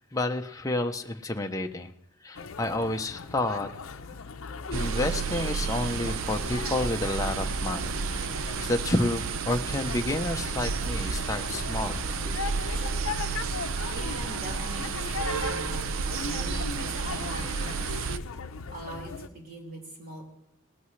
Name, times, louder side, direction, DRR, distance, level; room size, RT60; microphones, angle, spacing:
voice 1, 0.1-1.9 2.2-3.8 4.7-7.9 8.6-12.4, left 2 dB, 15° left, 4 dB, 0.7 m, -30 dB
sound 1, 2.3-19.3, left 5 dB, 85° left, 0.6 m, -39 dB
sound 2, 4.7-18.2, right 5 dB, 80° right, 0.6 m, -31 dB
voice 2, 13.9-15.9 16.2-18.0 18.7-20.2, right 1 dB, 45° right, -2 dB, 4.6 m, -42 dB
19.0 x 14.0 x 3.2 m, 0.79 s
head